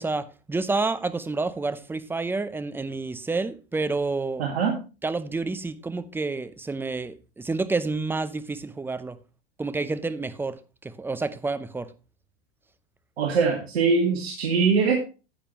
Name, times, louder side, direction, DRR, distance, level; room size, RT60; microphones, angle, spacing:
voice 1, 0.0-4.5 5.0-9.2 9.6-11.9, right 3 dB, 5° right, 0.6 m, -29 dB
voice 2, 4.4-4.8 13.2-15.0, right 5 dB, 75° right, 2.0 m, -22 dB
10.0 x 8.8 x 3.1 m
hypercardioid pair, 105°, 31 cm